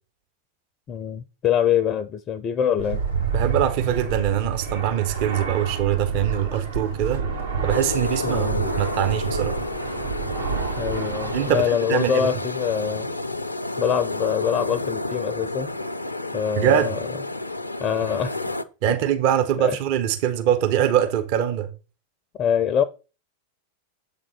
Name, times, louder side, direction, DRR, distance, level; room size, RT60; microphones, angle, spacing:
voice 1, 0.9-3.0 8.2-8.7 10.8-13.1 13.8-15.7 16.3-17.0 17.8-18.4 18.9-19.0 19.6-19.8 22.4-22.8, left 9 dB, 30° left, 0.5 m, -24 dB
Fixed-wing aircraft airplane, 2.8-11.6, right 5 dB, 70° right, 1.5 m, -29 dB
voice 2, 3.3-7.2 7.6-9.6 11.3-12.3 16.6-17.0 18.8-21.7, right 10 dB, 45° right, 0.8 m, -23 dB
sound 1, 7.7-18.6, left 2 dB, 85° left, 0.5 m, -30 dB
7.7 x 3.7 x 5.5 m
figure-of-eight pair, 90°, 0 cm